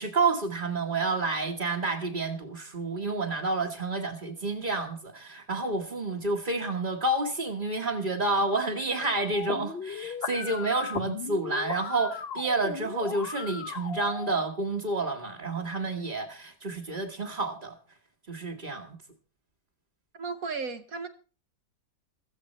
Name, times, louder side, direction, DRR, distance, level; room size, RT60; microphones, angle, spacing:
voice 1, 0.0-17.8 18.3-19.0, right 3 dB, 30° right, -2 dB, 1.5 m, -29 dB
sound 1, 9.3-14.3, left 6 dB, 45° left, 0.9 m, -37 dB
voice 2, 20.1-21.1, right 4 dB, 60° right, 6 dB, 1.5 m, -34 dB
15.5 x 14.5 x 4.3 m, 0.37 s
omnidirectional pair, 1.8 m